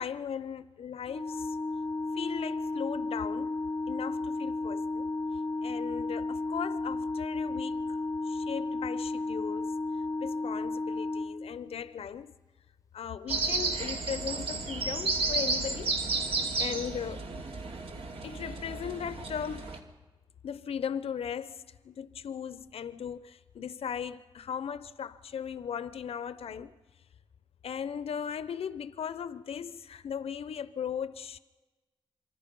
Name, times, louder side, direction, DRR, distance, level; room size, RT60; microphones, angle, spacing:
voice 1, 0.0-1.6 2.2-3.6 3.9-5.1 5.6-8.0 8.3-9.7 10.2-12.3 12.9-16.0 16.6-17.3 18.2-19.7 20.4-26.8 27.6-31.4, left 7 dB, 85° left, 0.7 m, -37 dB
Organ, 1.1-11.9, left 2 dB, 35° left, 0.7 m, -33 dB
sound 1, 13.3-19.8, right 3 dB, 75° right, 2.7 m, -32 dB
27.5 x 24.0 x 5.4 m
cardioid pair, 85°, 10 cm